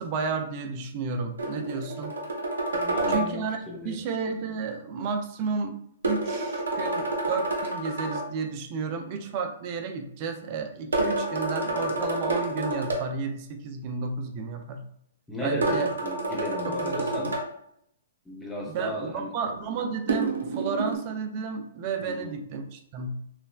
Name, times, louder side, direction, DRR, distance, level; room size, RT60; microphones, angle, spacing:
voice 1, 0.0-2.1 3.1-5.8 6.0-14.8 15.4-15.9 16.7-17.3 18.7-23.2, right 5 dB, 40° right, 5 dB, 0.4 m, -32 dB
sound 1, 1.4-3.3 6.0-8.3 10.9-13.0 15.6-17.4 20.1-21.0, right 2 dB, 85° right, 0.6 m, -28 dB
voice 2, 2.7-4.0 15.3-17.3 18.3-19.3 22.0-22.4, equal, 10° left, -2 dB, 0.6 m, -34 dB
3.1 x 2.1 x 2.3 m, 0.72 s
hypercardioid pair, 125°, 0 cm